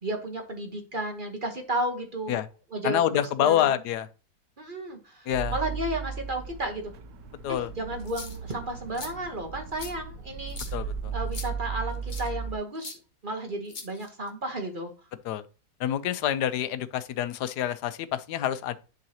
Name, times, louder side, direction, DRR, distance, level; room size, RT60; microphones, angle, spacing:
voice 1, 0.0-2.4 2.7-3.7 4.6-6.9 7.5-10.7 11.1-13.0 13.2-14.9, right 1 dB, 35° right, 1.1 m, -33 dB
voice 2, 2.8-4.1 5.3-5.5 7.4-7.7 10.7-11.1 15.2-15.4 15.8-18.8, left 11 dB, 80° left, 1.2 m, -27 dB
sound 1, 5.3-12.6, right 6 dB, 75° right, 1.3 m, -36 dB
sound 2, 8.0-8.5 8.9-9.1 9.8-9.9 10.5-10.7 11.3-11.5 12.1-12.3 12.8-13.0 13.7-14.3, left 4 dB, 35° left, 1.0 m, -40 dB
10.5 x 3.9 x 2.8 m
omnidirectional pair, 1.7 m